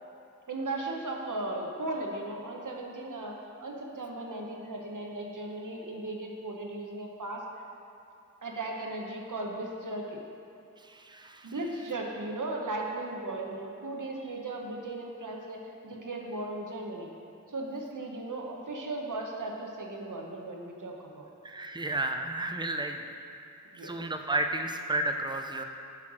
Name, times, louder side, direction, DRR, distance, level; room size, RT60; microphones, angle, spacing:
voice 1, 0.5-7.4 8.4-10.2 11.4-17.1 17.5-21.3 23.7-24.0, right 2 dB, 85° right, 0 dB, 1.0 m, -37 dB
voice 2, 10.8-11.5 21.4-23.0 23.8-25.6, right 2 dB, 15° right, 4 dB, 0.5 m, -32 dB
7.5 x 4.5 x 6.2 m, 2.7 s
wide cardioid pair, 40°, 31 cm